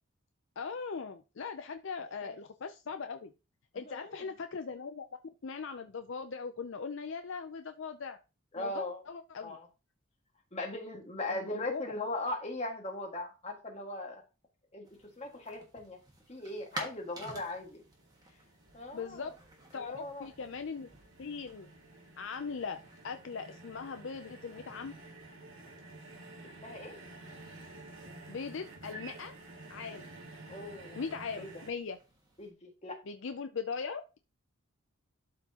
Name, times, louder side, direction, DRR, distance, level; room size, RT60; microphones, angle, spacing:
voice 1, 0.6-3.3 3.7-5.1 5.4-8.2 8.6-9.6 11.3-11.8 18.9-19.3 19.7-20.9 21.2-21.7 22.2-25.0 28.3-29.3 29.7-30.1 31.0-32.0 33.1-34.2, left 5 dB, 60° left, 8 dB, 0.5 m, -40 dB
voice 2, 3.7-4.3 8.5-9.0 9.4-9.7 10.5-14.2 14.7-14.9 15.2-16.0 16.3-17.8 18.7-19.3 19.8-20.3 26.6-27.0 30.5-31.0 31.4-31.5 32.4-33.0, left 2 dB, 30° left, 1 dB, 1.8 m, -39 dB
sound 1, 14.8-32.5, right 1 dB, 20° right, 1.5 m, -53 dB
sound 2, 17.4-31.7, right 2 dB, 65° right, 1.9 m, -51 dB
12.0 x 4.5 x 2.9 m, 0.30 s
head